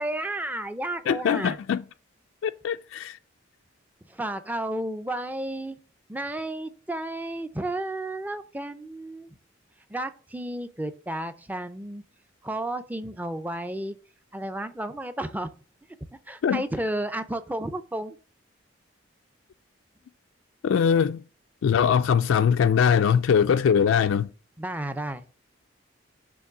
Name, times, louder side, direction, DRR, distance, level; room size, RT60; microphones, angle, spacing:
voice 1, 0.0-1.6 4.1-5.8 6.1-9.3 9.9-12.0 12.4-14.0 14.3-15.5 16.3-18.2 24.6-25.2, right 1 dB, 10° right, 0.4 m, -32 dB
voice 2, 1.1-1.8 2.4-3.2 16.4-16.6 20.6-21.2 21.6-24.3, left 7 dB, 75° left, 0.3 m, -21 dB
7.0 x 3.2 x 6.0 m
head